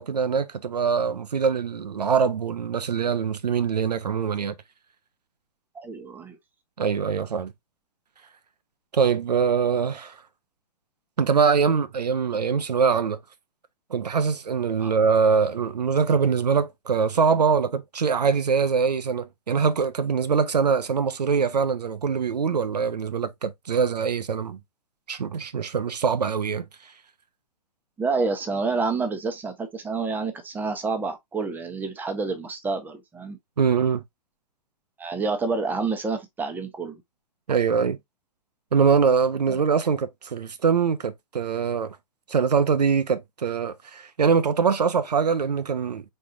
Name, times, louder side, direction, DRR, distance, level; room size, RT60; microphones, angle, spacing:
voice 1, 0.0-4.5 6.8-7.5 8.9-10.2 11.2-13.2 13.9-24.6 25.1-26.9 33.6-34.0 37.5-38.0 38.7-42.0 42.3-46.0, right 6 dB, 75° right, 0.7 m, -23 dB
voice 2, 5.7-6.4 14.8-14.9 28.0-33.4 35.0-37.0 39.5-39.6, right 4 dB, 10° right, 0.9 m, -28 dB
4.6 x 4.3 x 2.6 m
figure-of-eight pair, 115°, 21 cm